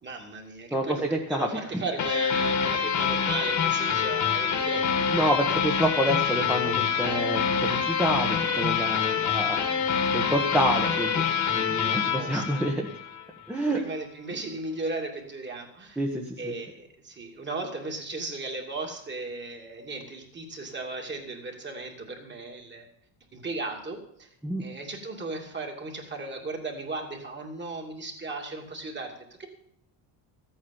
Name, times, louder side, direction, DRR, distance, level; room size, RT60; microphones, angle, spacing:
voice 1, 0.0-5.3 8.9-9.0 11.9-12.7 13.7-16.0 16.4-22.9 23.3-24.3 24.6-29.5, right 3 dB, 25° right, 2 dB, 2.6 m, -36 dB
voice 2, 0.7-1.5 5.1-9.6 10.1-11.2 11.5-12.9 13.5-13.8 16.0-16.5 24.4-24.6, right 1 dB, 5° right, -1 dB, 1.3 m, -28 dB
sound 1, 2.0-13.3, left 7 dB, 40° left, 1.8 m, -26 dB
14.0 x 8.8 x 7.1 m, 0.71 s
cardioid pair, 130°, 43 cm